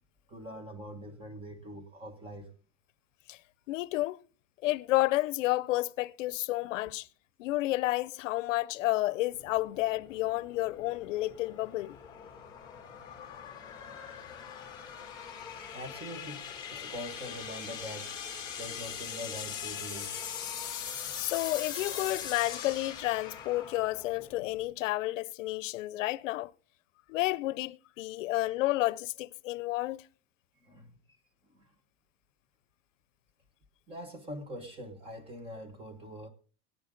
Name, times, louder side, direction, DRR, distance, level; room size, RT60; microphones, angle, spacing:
voice 1, 0.3-2.5 15.7-18.1 18.6-20.2 21.0-21.1 30.6-31.0 31.5-31.7 33.9-36.3, equal, 15° right, 1.4 m, -43 dB
voice 2, 3.7-4.2 4.6-7.1 7.4-12.0 21.2-26.5 27.1-30.1, left 18 dB, 85° left, 0.6 m, -31 dB
sound 1, 9.3-24.7, left 8 dB, 10° left, 2.2 m, -41 dB
20.5 x 9.0 x 3.8 m
supercardioid pair, 165°, 37 cm